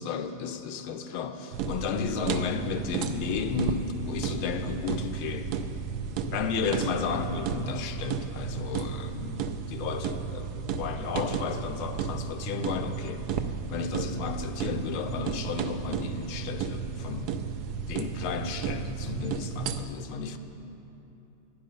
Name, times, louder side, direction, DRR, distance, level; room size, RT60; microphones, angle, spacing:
voice 1, 0.0-5.5 6.3-13.2 13.7-17.4 17.9-20.4, left 6 dB, 85° left, 7 dB, 1.5 m, -33 dB
sound 1, 1.5-19.8, right 6 dB, 85° right, 0.8 m, -33 dB
11.5 x 11.5 x 5.2 m, 2.9 s
omnidirectional pair, 2.3 m